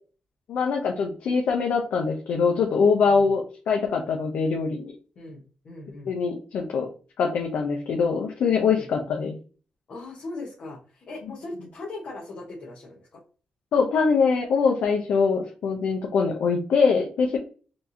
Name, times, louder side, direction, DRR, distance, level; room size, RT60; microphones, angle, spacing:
voice 1, 0.5-4.9 6.0-6.9 7.2-9.3 13.7-17.4, left 5 dB, 85° left, 0 dB, 0.7 m, -23 dB
voice 2, 5.2-6.1 8.7-8.9 9.9-13.1, left 2 dB, 65° left, -4 dB, 1.1 m, -39 dB
4.5 x 2.8 x 2.7 m, 0.37 s
cardioid pair, 115°, 3 cm